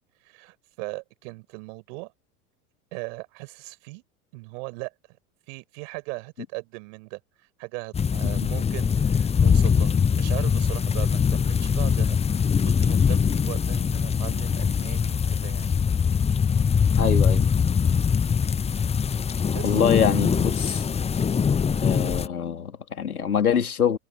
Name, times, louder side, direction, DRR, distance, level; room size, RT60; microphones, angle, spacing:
voice 1, 0.2-2.1 2.9-4.0 4.3-4.9 5.5-7.2 7.6-15.7 19.5-19.8, right 29 dB, 60° right, 6.0 m, -38 dB
sound 1, 7.9-22.3, left 6 dB, 15° left, 0.7 m, -22 dB
voice 2, 17.0-17.5 19.6-20.8 21.8-24.0, left 7 dB, 90° left, 3.2 m, -24 dB
hypercardioid pair, 85°, 43 cm